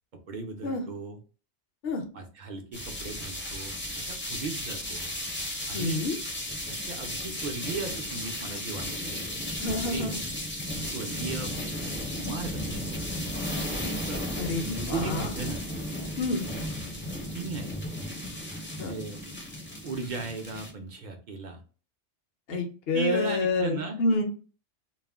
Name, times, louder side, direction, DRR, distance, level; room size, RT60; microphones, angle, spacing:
voice 1, 0.3-1.2 2.1-5.1 5.7-6.0 6.7-9.1 9.9-10.2 10.8-11.5 11.8-13.0 13.7-15.6 17.3-17.7 18.8-19.2 19.8-21.6 22.5-22.6 22.9-24.0, right 4 dB, 55° right, 4 dB, 0.6 m, -37 dB
sound 1, 2.7-20.7, left 1 dB, 15° left, 0.4 m, -34 dB
voice 2, 5.7-6.2 9.6-10.2 14.4-15.3 16.2-16.4 18.8-18.9 22.5-24.2, left 2 dB, 65° left, 3 dB, 0.7 m, -28 dB
2.3 x 2.1 x 3.4 m, 0.37 s
omnidirectional pair, 1.2 m